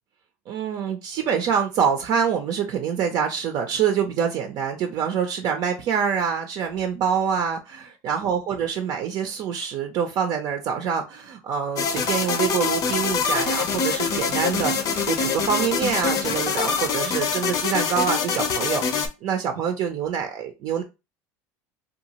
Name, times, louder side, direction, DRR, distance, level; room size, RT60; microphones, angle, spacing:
voice 1, 0.5-20.8, right 7 dB, 55° right, 0.5 m, -25 dB
sound 1, 11.8-19.1, left 5 dB, 50° left, 0.6 m, -24 dB
2.7 x 2.4 x 2.9 m
supercardioid pair, 110°, 8 cm